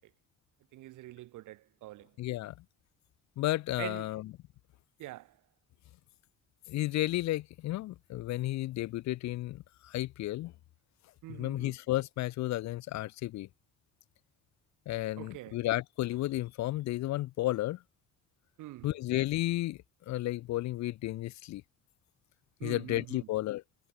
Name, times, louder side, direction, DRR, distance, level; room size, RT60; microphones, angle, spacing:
voice 1, 0.7-2.1 3.8-4.1 5.0-5.4 11.2-11.7 15.2-15.6 18.6-18.9 22.6-23.3, right 17 dB, 85° right, 0.9 m, -44 dB
voice 2, 2.2-2.5 3.4-4.3 6.7-10.5 11.3-13.5 14.9-17.8 18.8-19.8 20.1-21.6 22.6-23.6, left 16 dB, 65° left, 0.5 m, -33 dB
cardioid pair, 90°, 30 cm